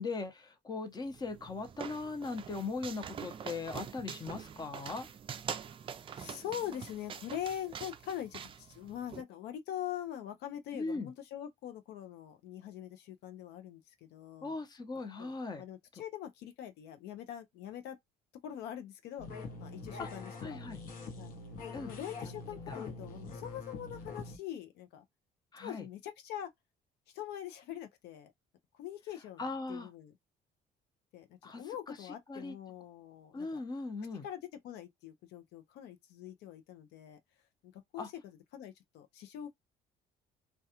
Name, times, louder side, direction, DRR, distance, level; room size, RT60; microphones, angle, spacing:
voice 1, 0.0-5.1 10.7-11.1 14.4-15.6 20.0-20.1 20.4-20.8 21.7-21.9 22.2-22.3 22.7-22.8 25.5-25.8 29.4-29.9 31.4-31.6 32.3-32.5 33.3-34.2 38.0-38.1, left 3 dB, 25° left, 0.7 m, -39 dB
sound 1, 1.0-9.2, right 7 dB, 30° right, 0.3 m, -45 dB
voice 2, 6.2-14.5 14.9-18.0 18.4-20.6 21.2-21.3 21.7-25.0 25.6-26.5 27.1-28.3 28.8-30.2 31.1-33.6 34.2-37.2 37.6-39.5, left 11 dB, 80° left, 0.5 m, -43 dB
sound 2, 19.2-24.4, left 3 dB, 55° left, 0.8 m, -44 dB
2.3 x 2.2 x 2.8 m
cardioid pair, 110°, 17 cm